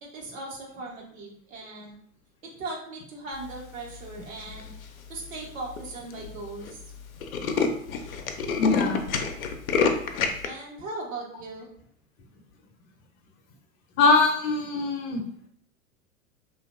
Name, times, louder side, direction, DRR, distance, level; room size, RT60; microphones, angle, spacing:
voice 1, 0.0-2.0 2.6-4.7 5.1-6.8 10.4-11.7, right 2 dB, 70° right, -2 dB, 1.1 m, -38 dB
Tools, 4.4-4.8 5.4-5.5 5.8-5.9 6.1-6.3 6.6-6.7 7.0-10.5, left 5 dB, 80° left, 0.5 m, -27 dB
voice 2, 8.6-9.0 14.0-15.2, left 4 dB, 35° left, 3 dB, 0.6 m, -22 dB
2.8 x 2.4 x 2.4 m, 0.64 s
figure-of-eight pair, 90°, 41 cm